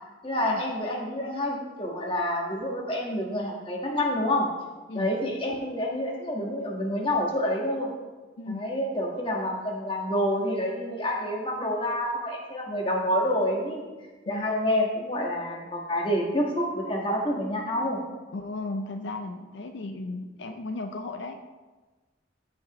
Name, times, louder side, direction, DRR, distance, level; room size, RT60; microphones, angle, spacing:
voice 1, 0.2-4.5 4.9-7.9 8.5-13.9 14.3-18.0, left 1 dB, 30° left, -1 dB, 1.4 m, -28 dB
voice 2, 18.3-21.5, left 2 dB, 75° left, 6 dB, 0.5 m, -35 dB
14.5 x 5.3 x 3.0 m, 1.3 s
head